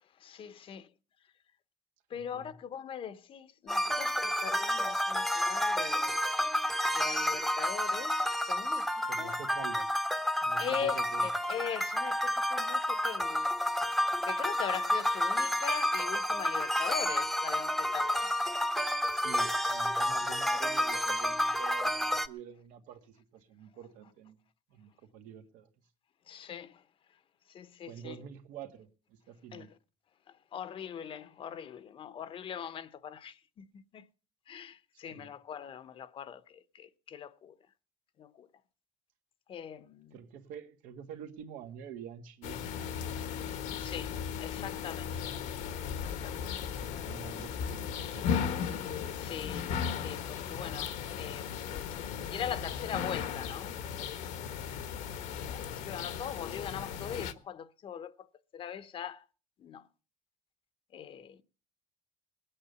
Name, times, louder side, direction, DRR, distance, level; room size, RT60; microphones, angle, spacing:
voice 1, 0.2-0.8 2.1-6.1 6.9-8.1 8.5-8.9 9.2-9.3 10.6-10.9 11.2-13.4 14.3-18.3 26.3-26.7 27.5-28.1 29.5-29.6 30.5-33.6 34.5-36.4 36.8-37.5 38.2-38.3 39.5-40.1 43.8-44.1 44.4-45.3 46.0-46.4 49.2-49.8 50.0-51.5 52.3-54.2 55.5-58.1 58.5-59.2 59.6-59.8 60.9-61.4, left 8 dB, 45° left, 0.9 m, -41 dB
voice 2, 2.1-2.5 9.0-10.0 10.4-11.3 19.1-24.4 24.7-25.7 27.9-29.7 35.1-35.3 40.1-43.0 46.4-48.5, right 8 dB, 90° right, 1.8 m, -47 dB
sound 1, 3.7-22.3, left 1 dB, ahead, 0.8 m, -30 dB
sound 2, 42.4-57.3, left 7 dB, 75° left, 1.4 m, -36 dB
20.0 x 8.8 x 6.8 m
cardioid pair, 135°, 13 cm